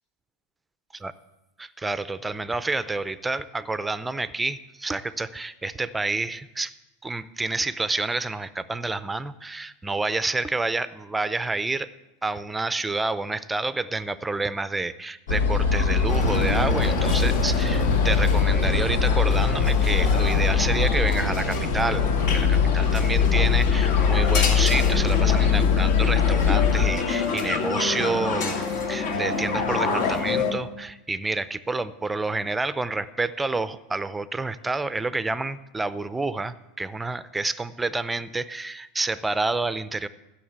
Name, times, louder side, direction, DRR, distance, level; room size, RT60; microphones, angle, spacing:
voice 1, 1.6-6.7 7.0-11.9 12.2-40.1, right 3 dB, 10° right, 14 dB, 0.6 m, -29 dB
sound 1, 15.3-26.9, left 6 dB, 85° left, 1.7 m, -22 dB
sound 2, 16.1-30.5, left 4 dB, 60° left, 2.6 m, -28 dB
14.5 x 6.5 x 8.8 m, 1.0 s
supercardioid pair, 125°, 0 cm